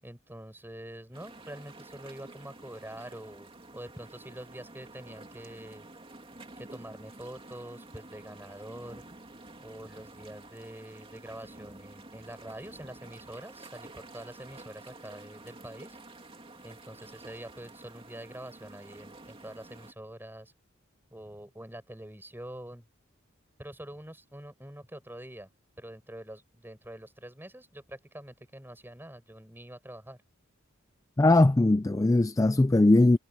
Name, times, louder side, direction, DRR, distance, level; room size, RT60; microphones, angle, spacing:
voice 1, 0.0-5.9 6.6-9.1 9.6-16.0 16.6-20.5 21.1-22.9 23.6-25.5 25.8-30.2, right 1 dB, 10° right, 7.7 m, -45 dB
sound 1, 1.1-19.9, right 2 dB, 25° right, 2.7 m, -50 dB
voice 2, 31.2-33.2, left 2 dB, 15° left, 0.3 m, -20 dB
head